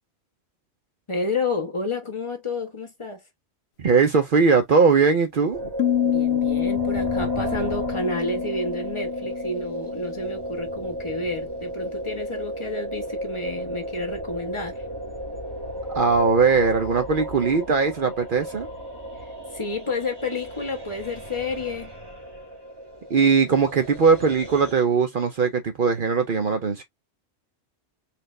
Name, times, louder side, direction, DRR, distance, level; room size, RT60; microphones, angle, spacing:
voice 1, 1.1-3.2 6.0-14.8 19.5-21.9, left 2 dB, 25° left, 1.2 m, -30 dB
voice 2, 3.8-5.7 15.9-18.7 23.1-26.8, right 5 dB, 55° right, 0.8 m, -20 dB
sound 1, 5.5-24.7, right 1 dB, 25° right, 1.2 m, -34 dB
sound 2, 5.8-10.7, left 11 dB, 85° left, 0.9 m, -27 dB
4.2 x 2.5 x 3.2 m
omnidirectional pair, 1.1 m